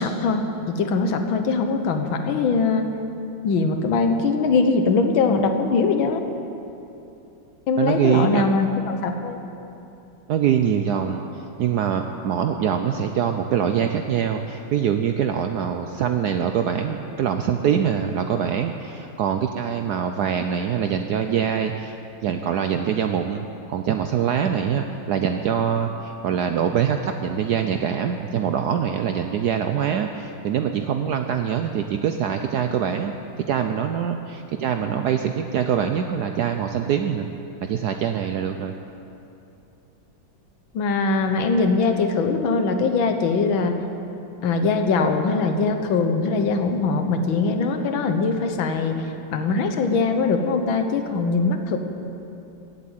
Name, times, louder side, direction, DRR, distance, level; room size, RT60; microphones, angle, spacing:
voice 1, 0.0-2.9 3.4-6.2 7.7-9.4 40.7-43.8 44.4-49.0 49.3-51.8, left 4 dB, 80° left, 6 dB, 1.8 m, -22 dB
voice 2, 7.8-8.4 10.3-11.2 11.6-22.0 22.2-33.1 33.4-37.3 37.6-38.7, right 8 dB, 70° right, 6 dB, 1.0 m, -24 dB
16.0 x 8.2 x 8.9 m, 2.8 s
omnidirectional pair, 2.2 m